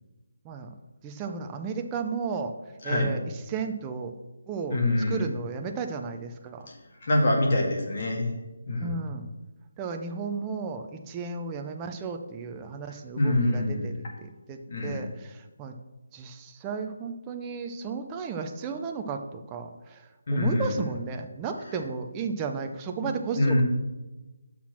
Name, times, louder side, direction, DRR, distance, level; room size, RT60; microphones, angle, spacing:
voice 1, 0.4-0.7 1.0-2.5 2.8-4.1 4.5-4.8 5.1-6.7 8.8-9.3 9.8-15.7 16.1-23.6, right 5 dB, 10° right, 4 dB, 0.5 m, -34 dB
voice 2, 4.7-5.2 7.0-8.3 8.7-8.9 13.2-13.9 14.7-15.0 20.3-20.9 23.0-23.1 23.4-23.6, left 1 dB, 35° left, 0 dB, 2.0 m, -25 dB
8.2 x 5.9 x 6.0 m, 1.1 s
hypercardioid pair, 175°, 0 cm